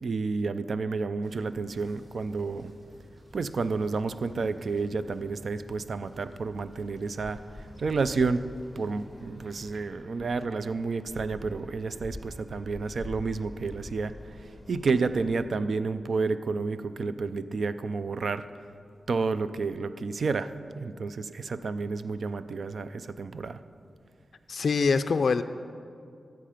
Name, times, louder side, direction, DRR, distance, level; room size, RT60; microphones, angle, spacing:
voice 1, 0.0-2.7 3.3-7.4 7.8-8.5 8.8-14.1 14.7-18.4 19.1-20.5 20.8-23.6, right 4 dB, 65° right, 12 dB, 0.4 m, -30 dB
sound 1, 1.2-9.8, equal, 45° right, 2.6 m, -53 dB
sound 2, 7.2-15.4, left 1 dB, 5° left, 1.1 m, -46 dB
voice 2, 24.5-25.4, left 4 dB, 65° left, 9 dB, 0.3 m, -24 dB
13.5 x 7.7 x 5.0 m, 2.4 s
wide cardioid pair, 80°, 0 cm